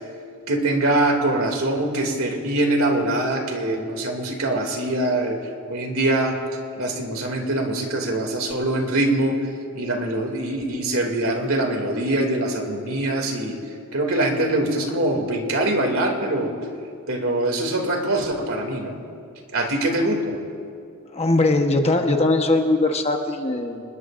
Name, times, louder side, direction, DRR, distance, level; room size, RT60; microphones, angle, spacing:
voice 1, 0.5-5.4 5.7-6.4 6.8-9.4 9.8-13.6 13.9-16.5 17.1-19.0 19.5-20.4, right 1 dB, 70° right, 2 dB, 2.6 m, -23 dB
voice 2, 21.1-23.8, left 2 dB, 30° left, 4 dB, 1.1 m, -20 dB
26.5 x 21.0 x 2.6 m, 2.4 s
head